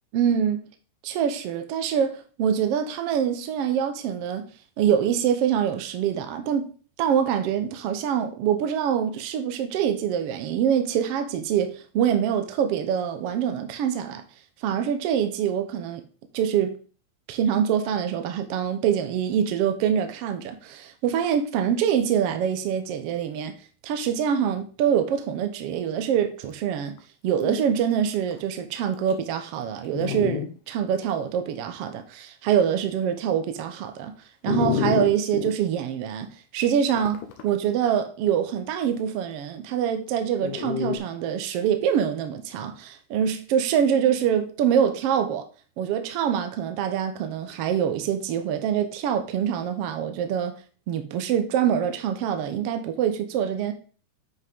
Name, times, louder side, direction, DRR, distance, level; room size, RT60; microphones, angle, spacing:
voice 1, 0.1-0.6 1.0-4.5 4.8-6.7 7.0-14.2 14.6-16.0 16.3-16.7 17.3-23.5 23.8-26.9 27.2-34.1 34.4-36.3 36.5-45.5 45.8-50.5 50.9-53.7, right 8 dB, 70° right, 1.5 m, -25 dB
Dog, 27.0-27.1 27.4-27.6 28.3-28.4 29.1-29.2 29.9-30.5 31.0-31.1 34.5-35.5 37.0-37.5 40.4-41.0, left 9 dB, 80° left, 2.3 m, -28 dB
9.6 x 5.4 x 3.5 m
omnidirectional pair, 3.7 m